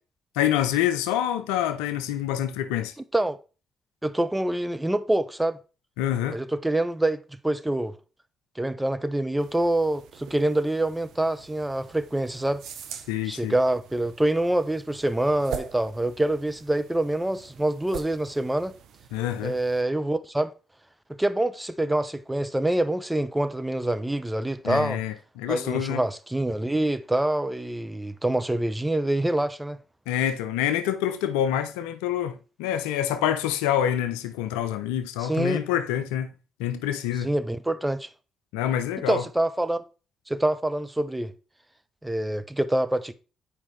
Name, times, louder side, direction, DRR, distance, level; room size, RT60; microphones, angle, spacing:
voice 1, 0.4-2.9 6.0-6.4 13.1-13.5 19.1-19.6 24.6-26.0 30.1-36.3 36.6-37.3 38.5-39.2, left 11 dB, 80° left, 0.5 m, -26 dB
voice 2, 4.0-5.6 6.3-8.0 8.6-12.6 13.3-18.7 19.4-20.5 21.2-25.0 25.5-29.8 35.2-35.6 37.2-38.1 39.1-39.8 40.3-41.3 42.0-43.1, right 1 dB, 10° right, 0.7 m, -26 dB
sound 1, 9.4-19.8, right 8 dB, 70° right, 0.7 m, -43 dB
7.3 x 5.0 x 3.2 m
hypercardioid pair, 50°, 0 cm